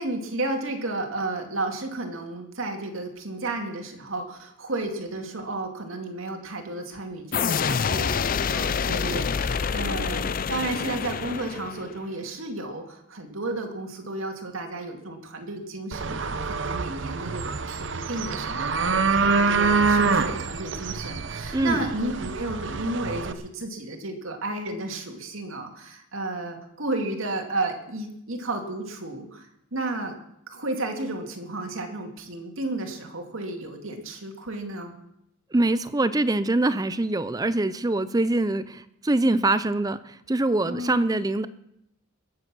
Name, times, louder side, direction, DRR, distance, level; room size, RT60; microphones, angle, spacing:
voice 1, 0.0-30.2 30.5-34.9 40.7-41.0, right 2 dB, 85° right, 4 dB, 2.4 m, -32 dB
sound 1, 7.3-12.0, left 6 dB, 45° left, 0.5 m, -27 dB
sound 2, 15.9-23.3, right 4 dB, 65° right, 0.8 m, -26 dB
voice 2, 21.5-21.8 35.5-41.5, right 2 dB, 20° right, 14 dB, 0.5 m, -24 dB
21.0 x 8.0 x 6.1 m, 0.78 s
head